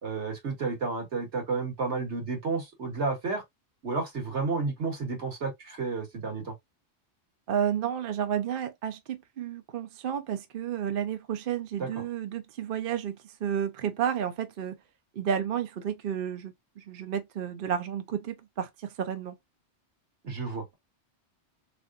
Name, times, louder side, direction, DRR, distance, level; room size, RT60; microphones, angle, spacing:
voice 1, 0.0-3.4 3.8-6.5 11.8-12.0 20.2-20.7, right 4 dB, 75° right, 1.9 m, -31 dB
voice 2, 7.5-14.8 15.2-19.3, right 8 dB, 55° right, 0.7 m, -31 dB
3.7 x 3.4 x 2.4 m
omnidirectional pair, 1.2 m